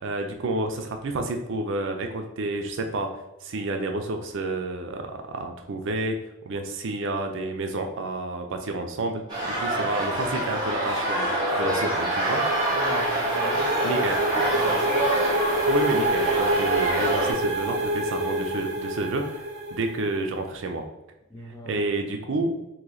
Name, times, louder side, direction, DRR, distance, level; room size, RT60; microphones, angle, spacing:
voice 1, 0.0-3.1 3.4-6.2 6.5-11.3 11.6-12.4 13.8-14.2 15.7-19.2 19.7-20.8 21.7-22.5, right 2 dB, 65° right, 4 dB, 0.5 m, -29 dB
sound 1, 9.3-17.3, right 1 dB, 25° right, 1.3 m, -26 dB
sound 2, 11.6-20.2, right 1 dB, 40° right, 1.1 m, -27 dB
voice 2, 12.7-14.0 14.3-15.0 21.3-21.8, left 1 dB, 15° left, 1 dB, 0.5 m, -36 dB
3.0 x 2.7 x 3.9 m, 0.93 s
head